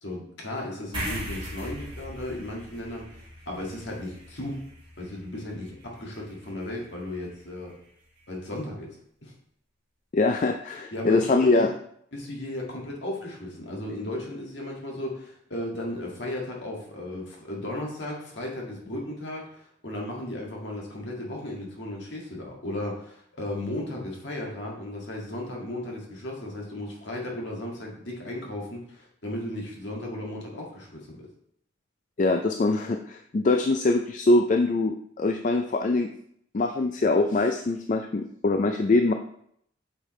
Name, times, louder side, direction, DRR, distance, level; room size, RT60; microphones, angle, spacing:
voice 1, 0.0-4.6 5.0-7.8 8.3-9.3 10.9-11.7 12.1-31.3, left 1 dB, 60° left, -2 dB, 2.0 m, -35 dB
sound 1, 0.9-7.7, equal, 25° right, 2.1 m, -40 dB
voice 2, 10.1-11.7 32.2-36.1 36.5-39.1, left 2 dB, 40° left, 5 dB, 0.4 m, -23 dB
8.4 x 5.4 x 3.2 m, 0.69 s
head